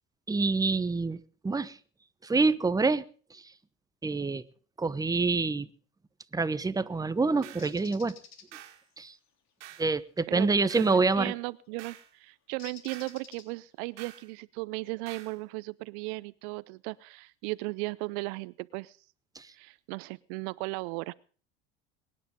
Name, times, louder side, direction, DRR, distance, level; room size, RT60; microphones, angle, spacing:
voice 1, 0.3-1.8 2.2-3.0 3.3-3.4 4.0-4.4 4.8-5.7 6.3-8.2 9.0-9.1 9.8-11.3 19.3-19.5, right 3 dB, 10° right, 14 dB, 0.9 m, -27 dB
sound 1, 7.4-7.7 8.5-8.8 9.6-9.9 10.7-11.0 11.8-12.1 12.9-13.2 14.0-14.3 15.1-15.4, right 12 dB, 85° right, 2.2 m, -48 dB
Bird, 7.6-8.5 11.1-11.3 12.6-13.8, left 7 dB, 50° left, 3.4 m, -50 dB
voice 2, 10.3-19.0 19.5-21.1, right 24 dB, 65° right, 20 dB, 0.7 m, -36 dB
22.5 x 9.9 x 5.2 m, 0.41 s
hypercardioid pair, 90°, 34 cm